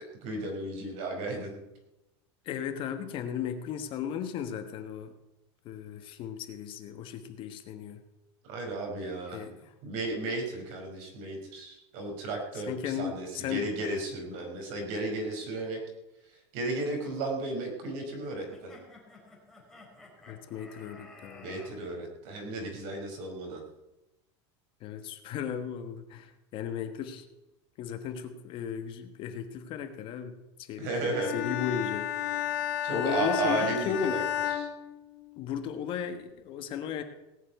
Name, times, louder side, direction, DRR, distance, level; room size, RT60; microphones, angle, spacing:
voice 1, 0.2-1.6 8.4-9.4 9.8-15.8 16.3-18.7 21.4-23.6 30.8-31.3 32.8-34.7, right 2 dB, 55° right, 2 dB, 4.8 m, -34 dB
voice 2, 2.4-5.1 5.6-8.0 9.3-9.7 12.7-13.7 20.3-21.5 24.8-27.2 27.8-30.9 31.3-32.6 32.9-34.2 35.4-37.0, left 8 dB, 35° left, 8 dB, 1.3 m, -35 dB
sound 1, 18.5-21.7, left 2 dB, 5° left, 3.9 m, -52 dB
Bowed string instrument, 31.1-35.6, left 11 dB, 60° left, 2.9 m, -33 dB
18.0 x 7.0 x 9.2 m, 0.99 s
supercardioid pair, 160°, 14 cm